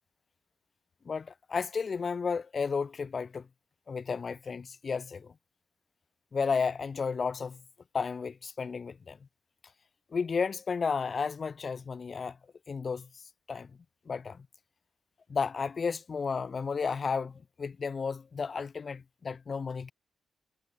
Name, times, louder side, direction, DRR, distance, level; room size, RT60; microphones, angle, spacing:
voice 1, 1.1-3.5 3.9-5.3 6.3-7.6 7.9-9.2 10.1-12.4 12.7-13.1 13.5-13.7 14.1-14.5 15.3-19.9, left 5 dB, 40° left, 3.4 m, -33 dB
wide cardioid pair, 145°, 0 cm